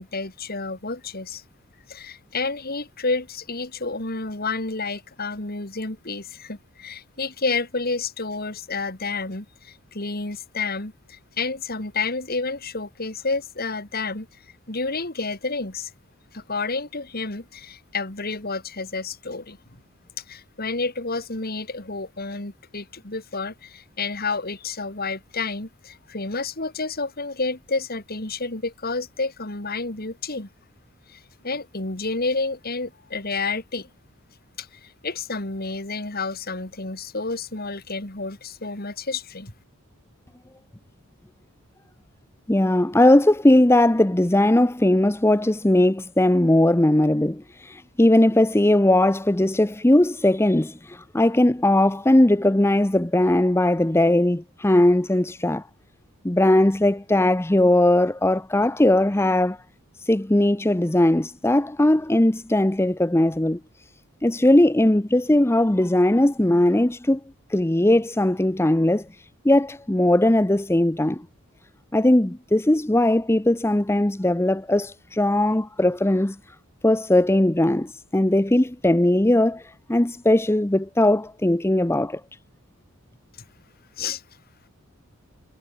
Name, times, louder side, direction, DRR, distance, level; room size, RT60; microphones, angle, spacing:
voice 1, 0.0-1.4 1.9-14.3 14.7-15.9 16.3-19.6 20.3-30.5 31.1-33.9 34.6-39.5 84.0-84.2, left 3 dB, 45° left, 2.8 m, -30 dB
voice 2, 42.5-55.7 56.2-59.6 60.0-63.6 64.2-67.2 67.5-69.1 69.4-71.2 71.9-76.4 76.8-82.2, left 1 dB, 10° left, 0.7 m, -19 dB
head